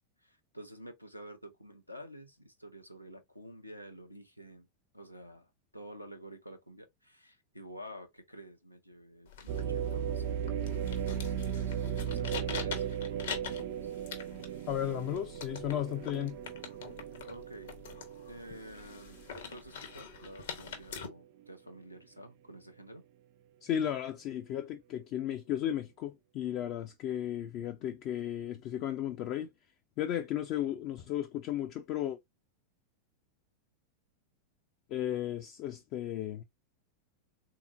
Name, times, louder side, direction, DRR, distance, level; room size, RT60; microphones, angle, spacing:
voice 1, 0.2-4.7 4.9-12.8 13.1-13.9 17.3-17.7 18.3-23.0, equal, 90° left, 0.7 m, -50 dB
sound 1, 9.3-21.1, left 7 dB, 60° left, 0.8 m, -45 dB
sound 2, 9.5-19.4 19.9-20.0 20.7-21.0, right 8 dB, 45° right, 0.4 m, -36 dB
voice 2, 14.7-16.4 23.6-29.5 30.0-32.2 34.9-36.4, left 11 dB, 40° left, 0.4 m, -34 dB
3.6 x 2.9 x 2.4 m
figure-of-eight pair, 90°, 0 cm